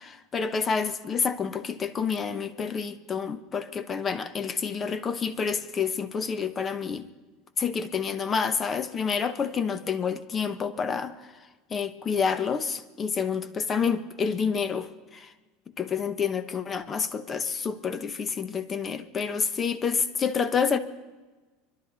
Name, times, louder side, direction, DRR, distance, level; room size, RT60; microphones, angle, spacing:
voice 1, 0.0-7.1 7.6-11.3 11.7-15.3 15.8-20.8, left 6 dB, 25° left, 1.0 m, -28 dB
24.5 x 12.0 x 4.1 m
supercardioid pair, 120°, 0 cm